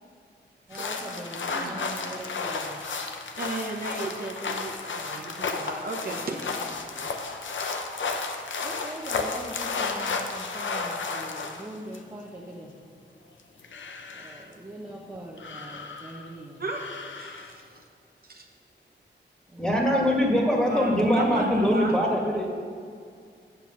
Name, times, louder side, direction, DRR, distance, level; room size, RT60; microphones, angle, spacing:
sound 1, 0.7-12.0 13.4-14.4 15.4-16.3 16.6-17.6, left 4 dB, 90° left, 0.7 m, -33 dB
voice 1, 0.7-2.8 6.6-7.1 8.6-12.8 14.1-16.6 19.5-20.5, right 1 dB, 15° right, -3 dB, 0.9 m, -42 dB
voice 2, 1.4-1.9 3.4-6.5 16.6-16.9 17.2-17.6 18.3-18.5 20.7-21.9, right 2 dB, 50° right, 1 dB, 0.9 m, -34 dB
voice 3, 19.6-22.5, equal, 5° left, -2 dB, 1.8 m, -23 dB
8.0 x 6.8 x 5.7 m, 2.2 s
wide cardioid pair, 90°, 19 cm